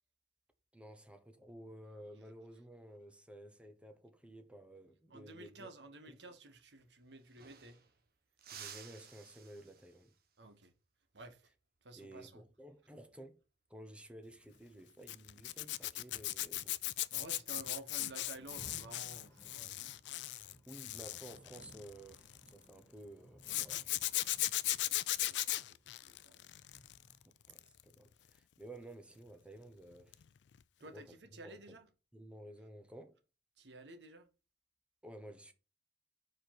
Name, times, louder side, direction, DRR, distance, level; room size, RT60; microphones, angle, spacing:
voice 1, 0.7-5.7 6.1-6.2 8.5-10.1 12.0-13.4 13.7-16.7 20.7-24.0 27.2-30.2 30.8-31.6 32.1-33.2 35.0-35.5, right 1 dB, 5° right, 1.0 m, -53 dB
voice 2, 5.1-7.8 10.4-10.7 11.1-11.5 11.8-12.4 17.1-19.9 24.8-26.6 30.8-31.9 33.6-34.3, right 2 dB, 85° right, 1.3 m, -53 dB
sound 1, 6.8-6.9 7.1-8.0 8.4-10.2 12.6-12.9 14.3-14.8, right 7 dB, 60° right, 1.2 m, -54 dB
Zipper (clothing), 15.1-22.5 23.4-27.1 27.4-27.8 30.1-30.3 30.5-30.6, left 16 dB, 90° left, 0.4 m, -38 dB
Rain, 18.3-27.3, equal, 15° left, 2.0 m, -61 dB
4.9 x 4.9 x 5.9 m
head